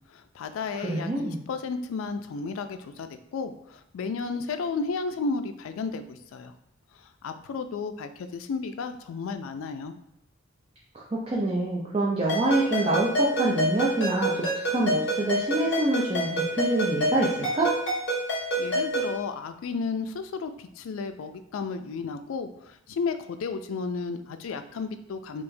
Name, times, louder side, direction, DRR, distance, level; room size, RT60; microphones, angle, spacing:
voice 1, 0.1-6.5 7.2-9.9 18.6-25.4, left 4 dB, 75° left, 9 dB, 0.3 m, -33 dB
voice 2, 0.8-1.4 10.9-17.7, right 2 dB, 30° right, -5 dB, 0.5 m, -26 dB
Ringtone, 12.3-19.2, right 1 dB, 55° left, 1.4 m, -28 dB
4.6 x 2.1 x 2.6 m, 0.81 s
head